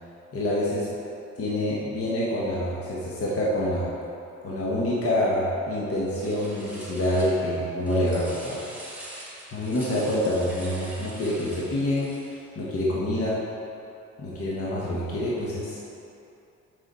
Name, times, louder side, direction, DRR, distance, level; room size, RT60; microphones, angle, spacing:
voice 1, 0.3-0.9 1.4-3.9 4.4-8.6 9.5-12.1 12.5-13.4 14.2-15.8, left 1 dB, 50° left, -6 dB, 1.2 m, -26 dB
sound 1, 6.1-7.6 7.9-12.5, right 1 dB, 5° right, 1.5 m, -44 dB
6.4 x 5.0 x 4.2 m, 2.8 s
cardioid pair, 90°, 30 cm